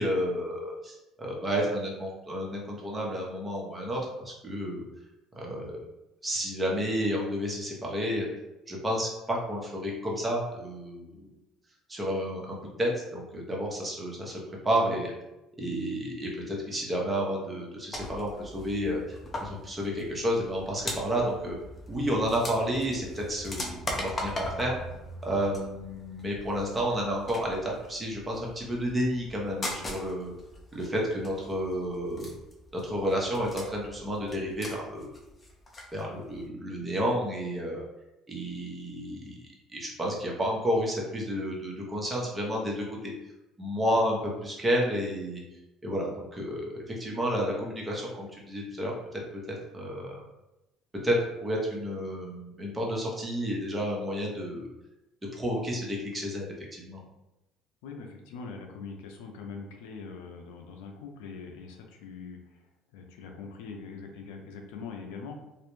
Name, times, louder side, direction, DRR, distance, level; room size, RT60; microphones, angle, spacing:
voice 1, 0.0-4.8 5.4-5.8 6.2-8.3 8.7-11.3 11.9-14.4 14.6-15.1 15.6-21.6 21.9-23.6 23.9-24.8 25.2-30.3 30.7-32.3 32.8-35.2 35.9-37.8 38.3-39.4 39.7-43.1 43.6-45.4 45.8-50.2 51.0-51.2 51.4-54.7 55.3-56.5 56.7-57.0, equal, 20° right, -2 dB, 0.8 m, -31 dB
sound 1, 17.9-36.0 36.3-36.4, left 1 dB, 30° left, 0.6 m, -40 dB
voice 2, 57.8-62.6 62.9-65.3, left 5 dB, 90° left, 2 dB, 0.4 m, -42 dB
2.4 x 2.1 x 3.0 m, 0.95 s
supercardioid pair, 90°, 0 cm